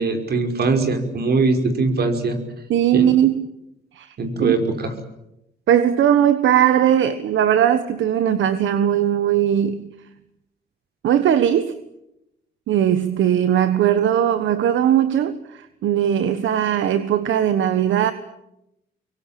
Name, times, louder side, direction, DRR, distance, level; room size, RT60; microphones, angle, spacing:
voice 1, 0.0-2.4 2.9-3.1 4.2-4.9, right 3 dB, 55° right, 5.4 m, -21 dB
voice 2, 2.7-3.5 3.9-4.2 4.4-4.6 5.7-9.9 11.0-11.7 12.7-18.1, right 10 dB, 75° right, 1.4 m, -19 dB
25.5 x 23.0 x 8.9 m
cardioid pair, 90°, 20 cm